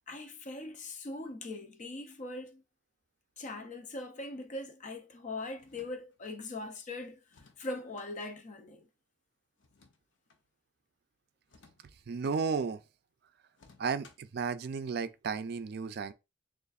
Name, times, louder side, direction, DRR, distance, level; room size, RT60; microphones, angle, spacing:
voice 1, 0.1-2.6 3.4-7.2 7.6-8.9, left 2 dB, 40° left, 0.6 m, -41 dB
sound 1, 5.6-6.4 7.3-8.1 9.6-10.4 11.4-12.4 13.5-14.4, left 4 dB, 80° left, 0.8 m, -61 dB
voice 2, 12.1-12.8 13.8-16.1, right 5 dB, 55° right, 0.4 m, -33 dB
6.7 x 2.5 x 2.4 m
head